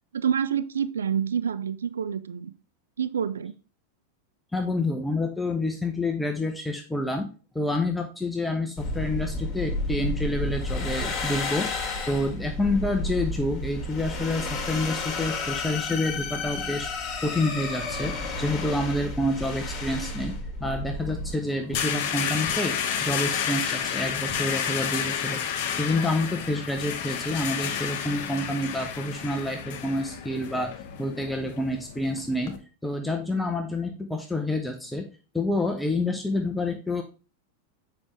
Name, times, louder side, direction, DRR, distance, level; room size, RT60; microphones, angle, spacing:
voice 1, 0.1-2.5 3.0-3.5, right 8 dB, 70° right, 15 dB, 0.3 m, -27 dB
voice 2, 4.5-7.3 7.5-11.7 12.1-16.9 17.2-25.4 25.8-30.7 31.0-32.5 32.8-35.1 35.3-37.0, left 2 dB, 5° left, 3 dB, 0.7 m, -28 dB
sound 1, 8.8-21.3, left 2 dB, 30° left, 1.7 m, -31 dB
sound 2, 21.0-32.6, left 8 dB, 45° left, 0.9 m, -31 dB
7.1 x 5.0 x 3.2 m, 0.35 s
figure-of-eight pair, 90°, 0 cm